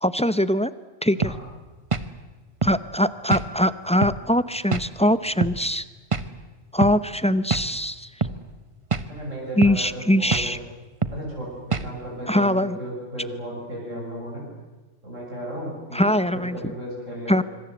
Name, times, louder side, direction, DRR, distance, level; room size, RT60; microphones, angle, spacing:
voice 1, 0.0-0.7 1.0-1.3 2.6-5.8 6.7-8.1 9.6-10.6 12.3-12.8 15.9-16.6 17.3-17.4, left 1 dB, 5° left, 14 dB, 0.6 m, -22 dB
sound 1, 1.2-1.4 1.9-2.1 2.6-2.8 3.3-3.5 4.0-4.2 4.7-4.9 5.4-5.6 6.1-6.3 6.8-7.0 7.5-7.7 8.2-8.4 8.9-9.1 9.6-9.8 10.3-10.5 11.0-11.2 11.7-11.9, right 4 dB, 25° right, 0.9 m, -25 dB
voice 2, 9.1-10.6 11.1-14.5 15.0-16.1 16.3-17.4, right 1 dB, 75° right, -3 dB, 7.9 m, -35 dB
25.5 x 24.5 x 8.0 m, 1.2 s
omnidirectional pair, 1.3 m